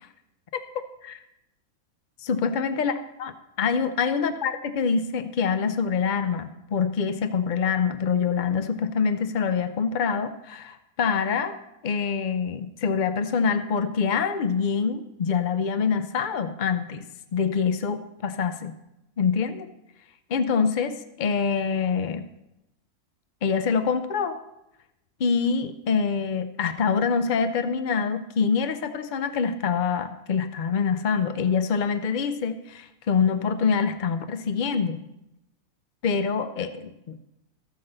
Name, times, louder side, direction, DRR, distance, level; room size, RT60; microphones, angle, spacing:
voice 1, 0.5-1.2 2.2-2.9 3.2-3.3 3.6-11.6 11.8-17.0 17.3-18.8 19.2-19.7 20.3-22.3 23.4-24.4 25.2-35.0 36.0-37.2, left 6 dB, 70° left, 9 dB, 0.4 m, -25 dB
14.0 x 5.6 x 6.6 m, 0.90 s
omnidirectional pair, 1.5 m